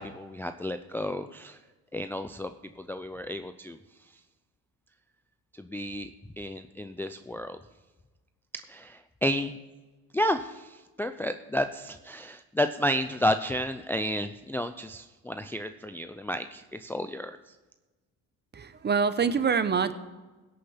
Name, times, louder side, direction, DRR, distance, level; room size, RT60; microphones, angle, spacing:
voice 1, 0.0-1.6 1.9-3.8 5.5-6.1 6.4-7.6 8.5-9.6 10.1-17.6, equal, 5° left, 8 dB, 0.4 m, -32 dB
voice 2, 18.5-19.9, right 6 dB, 30° right, 13 dB, 0.8 m, -25 dB
16.5 x 6.7 x 5.7 m, 1.2 s
cardioid pair, 95°, 37 cm